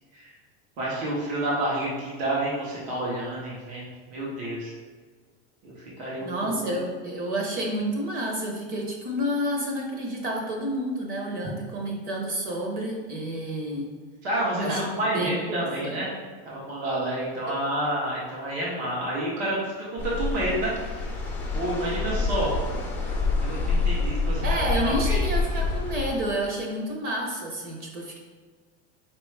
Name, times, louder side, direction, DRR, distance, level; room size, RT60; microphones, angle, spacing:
voice 1, 0.8-4.7 5.6-6.8 14.2-16.1 16.4-21.0 21.5-22.6 23.4-25.2, right 1 dB, 75° right, -6 dB, 1.5 m, -29 dB
voice 2, 6.2-13.9 14.6-15.3 15.8-16.0 24.4-28.2, right 1 dB, 25° right, -1 dB, 0.7 m, -30 dB
sound 1, 20.0-26.2, left 3 dB, 5° left, 0.3 m, -27 dB
4.7 x 3.0 x 3.3 m, 1.5 s
supercardioid pair, 165°, 32 cm